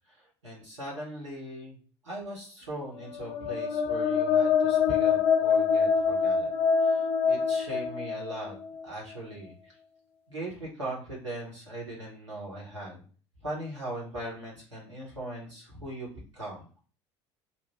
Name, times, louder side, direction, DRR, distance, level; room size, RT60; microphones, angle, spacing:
voice 1, 0.1-1.8 2.0-6.5 6.8-8.5 8.8-9.8 10.3-13.0 13.4-16.8, right 1 dB, 85° right, -5 dB, 1.2 m, -40 dB
sound 1, 3.1-8.8, left 6 dB, 60° left, 0.4 m, -25 dB
2.9 x 2.1 x 3.2 m, 0.40 s
figure-of-eight pair, 65°, 15 cm